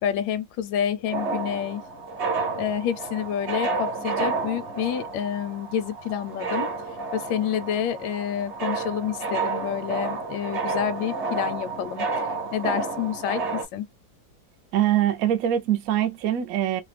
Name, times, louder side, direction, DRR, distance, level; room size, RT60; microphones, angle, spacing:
voice 1, 0.0-1.8 2.6-6.7 7.1-12.0 12.5-13.9, left 9 dB, 80° left, 1.2 m, -28 dB
sound 1, 1.1-13.6, right 4 dB, 40° right, 0.9 m, -30 dB
voice 2, 14.7-16.8, right 11 dB, 70° right, 0.8 m, -23 dB
3.2 x 2.0 x 3.2 m
omnidirectional pair, 2.0 m